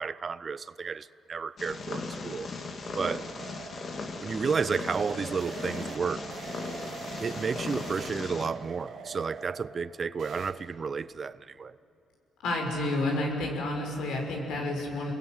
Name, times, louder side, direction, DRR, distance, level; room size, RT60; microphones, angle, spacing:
voice 1, 0.0-2.5 2.9-3.2 4.2-6.3 7.2-11.8, right 5 dB, 40° right, 0.6 m, -32 dB
Purr, 1.6-8.5, left 3 dB, 50° left, 2.3 m, -38 dB
sound 1, 1.6-10.5, right 6 dB, 70° right, 2.4 m, -44 dB
voice 2, 12.4-15.1, left 1 dB, 80° left, 5.7 m, -30 dB
28.0 x 21.5 x 9.3 m
cardioid pair, 90°, 0 cm